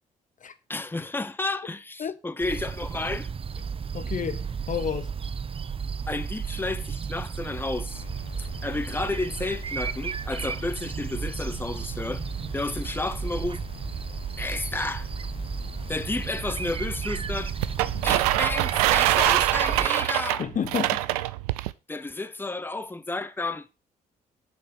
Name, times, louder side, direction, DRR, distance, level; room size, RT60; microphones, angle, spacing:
voice 1, 0.7-3.3 6.1-8.0 8.4-12.2 12.5-13.6 14.4-15.1 15.9-17.5 18.0-20.4 21.9-23.7, left 2 dB, 10° left, 0.8 m, -31 dB
sound 1, 2.4-19.9, right 6 dB, 30° right, 0.6 m, -33 dB
voice 2, 3.9-5.1 20.4-21.1, left 8 dB, 45° left, 0.8 m, -30 dB
sound 2, 7.9-19.4, left 11 dB, 80° left, 1.1 m, -45 dB
sound 3, 17.6-21.7, right 16 dB, 90° right, 0.4 m, -24 dB
7.4 x 6.0 x 5.9 m
hypercardioid pair, 50°, 19 cm